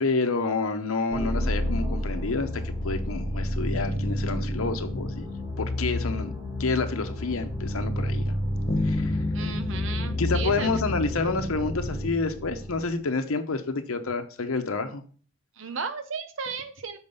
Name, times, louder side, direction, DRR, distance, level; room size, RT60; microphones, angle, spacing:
voice 1, 0.0-5.3 5.6-6.3 6.6-8.3 8.8-9.2 10.2-15.0, left 3 dB, 90° left, 7 dB, 0.8 m, -29 dB
sound 1, 1.1-13.0, left 1 dB, 15° right, 1.5 m, -30 dB
Bass guitar, 8.7-11.8, left 2 dB, 30° left, 0.7 m, -32 dB
voice 2, 9.3-10.7 15.6-17.0, right 5 dB, 65° right, 9 dB, 0.6 m, -35 dB
7.0 x 4.4 x 5.4 m, 0.42 s
head